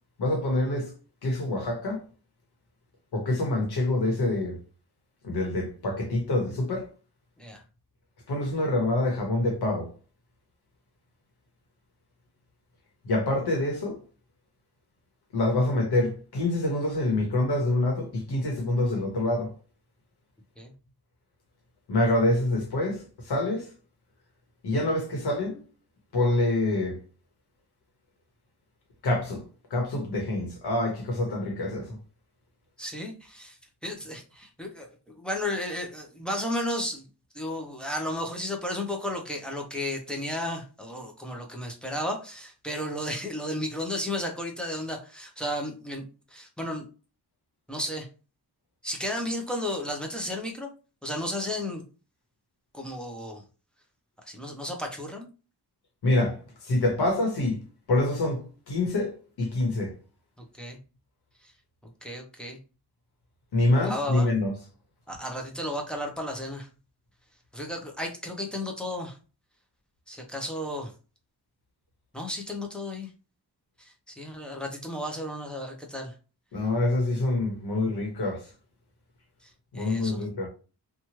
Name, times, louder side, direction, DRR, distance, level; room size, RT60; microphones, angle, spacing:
voice 1, 0.2-0.9 1.2-2.0 3.1-4.6 5.2-6.9 8.3-9.9 13.0-14.0 15.3-19.5 21.9-23.7 24.6-25.6 26.1-27.0 29.0-29.4 29.7-32.0 56.0-57.6 57.9-59.9 63.5-64.5 76.5-78.5 79.7-80.5, left 2 dB, 70° left, 1.1 m, -26 dB
voice 2, 32.8-37.1 37.3-46.9 47.7-48.1 48.8-50.7 51.0-51.8 52.7-53.4 54.2-55.3 60.4-60.8 61.4-61.5 62.0-62.6 63.8-64.3 65.1-66.7 67.5-69.2 70.1-70.9 72.1-73.1 73.8-76.1 79.4-80.3, left 1 dB, ahead, 0.4 m, -33 dB
2.9 x 2.3 x 2.8 m
wide cardioid pair, 170°, 40 cm